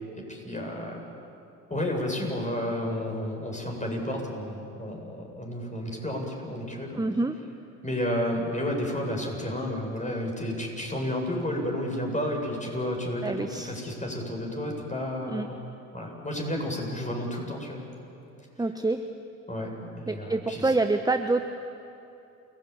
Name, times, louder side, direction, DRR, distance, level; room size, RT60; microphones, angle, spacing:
voice 1, 0.2-1.0 1.7-7.0 7.8-15.6 15.9-17.8 19.5-20.7, left 1 dB, 20° left, 1 dB, 8.0 m, -31 dB
voice 2, 7.0-7.3 13.2-13.7 15.2-15.5 18.6-19.0 20.1-21.4, right 3 dB, 10° right, 7 dB, 1.1 m, -26 dB
29.0 x 17.5 x 8.8 m, 2.8 s
hypercardioid pair, 55°, 40 cm